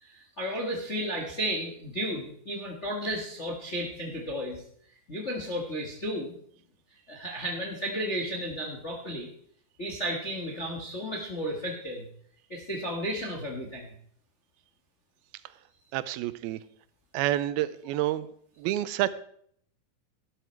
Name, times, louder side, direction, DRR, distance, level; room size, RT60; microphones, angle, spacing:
voice 1, 0.0-4.6 5.1-6.3 7.1-9.3 9.8-12.1 12.5-13.9, equal, 45° left, 0 dB, 0.8 m, -33 dB
voice 2, 15.9-16.6 17.1-18.3 18.6-19.2, right 14 dB, 90° right, 15 dB, 2.5 m, -28 dB
12.5 x 12.0 x 4.5 m, 0.64 s
omnidirectional pair, 4.3 m